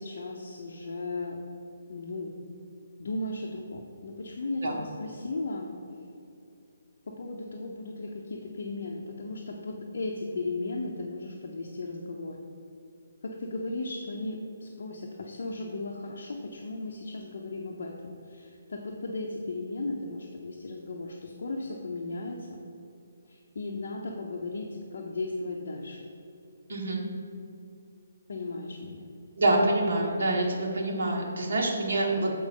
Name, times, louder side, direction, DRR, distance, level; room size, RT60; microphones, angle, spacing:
voice 1, 0.0-1.4 1.9-2.3 3.0-5.7 7.1-12.4 13.2-22.6 23.2-26.1 28.3-29.1, left 2 dB, 60° left, 0 dB, 0.8 m, -36 dB
voice 2, 26.7-27.0 29.4-32.3, right 2 dB, 55° right, -2 dB, 1.7 m, -26 dB
7.9 x 4.6 x 5.3 m, 2.8 s
hypercardioid pair, 170°, 0 cm